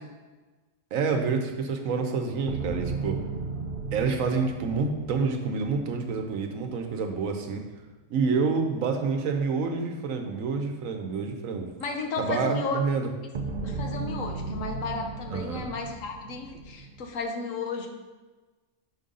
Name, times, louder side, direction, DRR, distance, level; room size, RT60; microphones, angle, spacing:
voice 1, 0.9-3.2 3.9-7.6 8.1-11.7 12.2-13.1 15.3-15.7, right 4 dB, 80° right, 5 dB, 1.2 m, -28 dB
sound 1, 2.5-6.8 13.3-17.1, right 4 dB, 50° right, 0.6 m, -35 dB
voice 2, 11.8-12.8 13.6-17.9, left 4 dB, 75° left, 4 dB, 1.2 m, -33 dB
6.1 x 5.4 x 3.8 m, 1.3 s
omnidirectional pair, 1.4 m